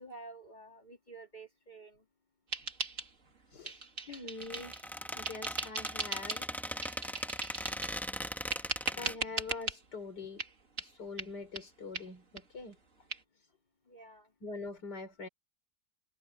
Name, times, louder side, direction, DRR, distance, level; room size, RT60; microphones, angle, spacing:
voice 1, 0.0-2.1 4.1-4.3 7.0-7.2 13.9-14.3, right 3 dB, 25° left, 2.6 m, -51 dB
sound 1, 2.5-3.4 3.6-4.9 5.2-6.5 6.8-8.0 8.5-9.8 10.4-10.5 10.8-10.9 11.2-11.3 11.6-11.7 11.9-12.1 12.4-12.5 12.7-12.8 13.1-13.2, right 4 dB, 50° right, 2.7 m, -38 dB
voice 2, 3.5-4.8 5.1-6.5 6.8-6.9 8.6-10.4 10.8-12.8 13.4-13.5 14.4-15.3, left 3 dB, 85° left, 4.6 m, -44 dB
Squeak, 4.4-9.5, equal, ahead, 1.0 m, -39 dB
omnidirectional pair, 1.7 m